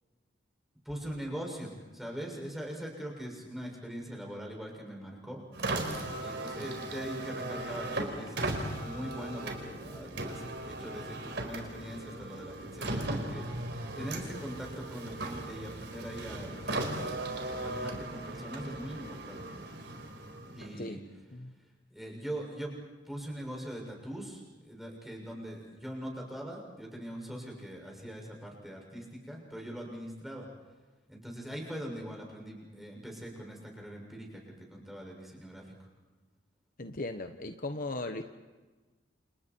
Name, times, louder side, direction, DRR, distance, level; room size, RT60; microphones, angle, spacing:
voice 1, 0.8-5.4 6.2-13.4 13.9-19.4 20.5-21.0 21.9-22.7 23.1-30.5 31.1-35.6, equal, ahead, -1 dB, 6.7 m, -42 dB
Car, 5.5-20.9, right 2 dB, 65° right, 4.6 m, -37 dB
voice 2, 36.8-38.2, left 2 dB, 50° left, 7 dB, 1.2 m, -37 dB
30.0 x 29.5 x 4.7 m, 1.3 s
head